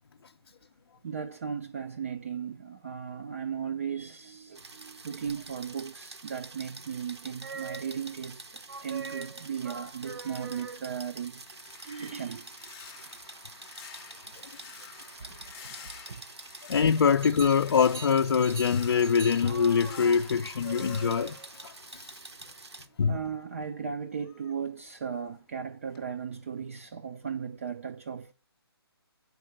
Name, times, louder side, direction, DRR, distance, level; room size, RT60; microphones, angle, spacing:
voice 1, 1.0-11.4 11.9-12.5 15.2-15.8 16.1-16.2 23.1-28.3, right 7 dB, 35° right, 0.3 m, -36 dB
sound 1, 4.5-22.9, right 3 dB, 85° right, 1.1 m, -47 dB
sound 2, 7.4-8.2 8.7-11.1 17.2-21.6, right 4 dB, 65° right, 1.1 m, -43 dB
sound 3, 11.1-22.6 22.9-25.6 25.9-26.2 26.6-26.8, left 7 dB, 15° left, 0.6 m, -51 dB
voice 2, 16.7-22.2 23.0-23.1, left 6 dB, 60° left, 0.4 m, -24 dB
7.7 x 4.7 x 6.2 m
figure-of-eight pair, 155°, 14 cm